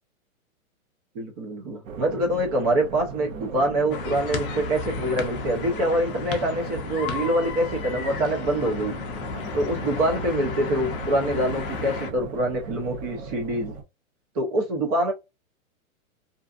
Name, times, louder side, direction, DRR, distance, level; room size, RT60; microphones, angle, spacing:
voice 1, 1.1-9.0 9.5-13.7 14.3-15.1, right 1 dB, 30° right, 0.6 m, -25 dB
sound 1, 1.8-13.8, right 5 dB, 75° right, 1.0 m, -38 dB
sound 2, 3.9-12.1, left 6 dB, 40° left, 0.6 m, -33 dB
2.6 x 2.3 x 2.4 m
hypercardioid pair, 135°, 42 cm